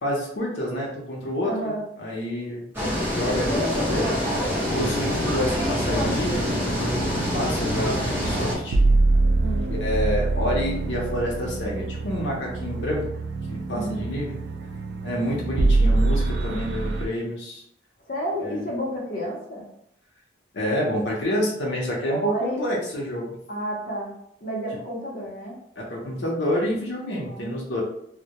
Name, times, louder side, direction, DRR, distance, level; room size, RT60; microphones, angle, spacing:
voice 1, 0.0-1.7 2.0-2.7 3.1-4.1 4.7-8.8 9.8-13.0 13.5-14.3 15.0-17.6 18.5-18.6 20.5-23.4 25.8-27.8, equal, 90° left, -3 dB, 0.6 m, -28 dB
voice 2, 1.4-1.8 9.4-9.7 13.7-14.0 18.1-19.7 22.1-22.6 23.5-24.1 24.4-25.6 27.2-27.5, equal, 50° left, -4 dB, 0.7 m, -30 dB
sound 1, 2.7-8.5, left 1 dB, 10° right, 0.7 m, -25 dB
sound 2, 4.8-17.1, right 2 dB, 75° right, 0.3 m, -25 dB
2.1 x 2.1 x 2.8 m, 0.73 s
head